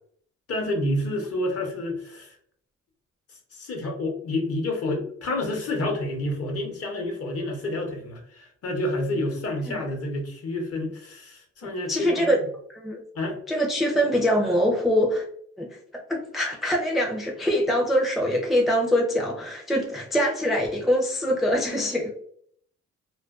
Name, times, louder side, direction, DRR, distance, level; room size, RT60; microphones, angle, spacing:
voice 1, 0.5-2.3 3.5-12.4 13.1-13.4, left 1 dB, 50° left, 2 dB, 0.8 m, -29 dB
voice 2, 11.6-12.4 12.7-13.0 13.5-15.2 15.6-22.1, equal, ahead, 0 dB, 0.4 m, -24 dB
2.4 x 2.2 x 2.3 m, 0.62 s
cardioid pair, 90°, 30 cm